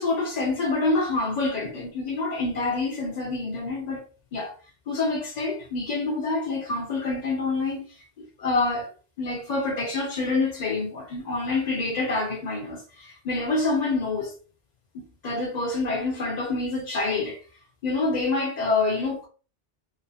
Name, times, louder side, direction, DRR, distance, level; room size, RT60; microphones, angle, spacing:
voice 1, 0.0-4.0 4.3-4.5 4.9-7.9 8.2-8.9 9.2-14.3 14.9-17.4 17.8-19.3, left 3 dB, 50° left, 0.6 m, -27 dB
2.5 x 2.4 x 2.3 m
omnidirectional pair, 1.1 m